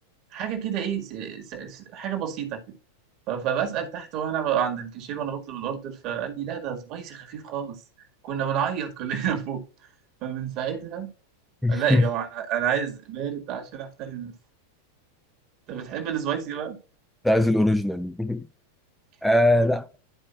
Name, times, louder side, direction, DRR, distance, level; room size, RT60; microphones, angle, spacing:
voice 1, 0.3-2.6 3.3-7.8 8.2-9.6 10.2-11.1 11.7-14.3 15.7-16.8, right 8 dB, 40° right, 1.9 m, -29 dB
voice 2, 11.6-12.1 17.2-18.5 19.2-19.9, left 1 dB, 5° left, 0.4 m, -21 dB
11.5 x 4.8 x 2.4 m
figure-of-eight pair, 90°, 0 cm